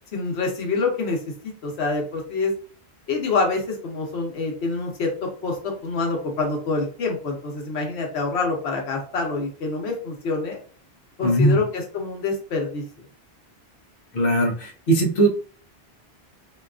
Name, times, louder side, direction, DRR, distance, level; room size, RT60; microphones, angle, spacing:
voice 1, 0.1-2.5 3.1-10.6 11.2-12.8, left 3 dB, 85° left, 1 dB, 1.1 m, -26 dB
voice 2, 11.2-11.6 14.1-15.3, right 1 dB, 60° left, 1 dB, 0.8 m, -19 dB
2.8 x 2.3 x 2.3 m, 0.43 s
omnidirectional pair, 1.1 m